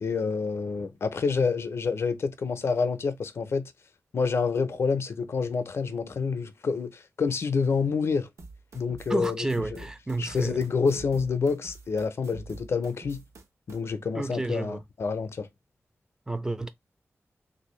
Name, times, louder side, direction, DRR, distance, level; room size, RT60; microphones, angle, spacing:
voice 1, 0.0-3.7 4.1-8.3 8.7-9.4 9.7-9.8 10.2-13.2 13.7-15.5, left 5 dB, 60° left, 0.5 m, -28 dB
sound 1, 8.4-13.8, right 3 dB, 75° right, 0.8 m, -47 dB
voice 2, 9.1-10.6 14.1-14.8 16.3-16.7, right 2 dB, 15° right, 0.4 m, -30 dB
3.3 x 2.6 x 3.0 m
wide cardioid pair, 130°, 5 cm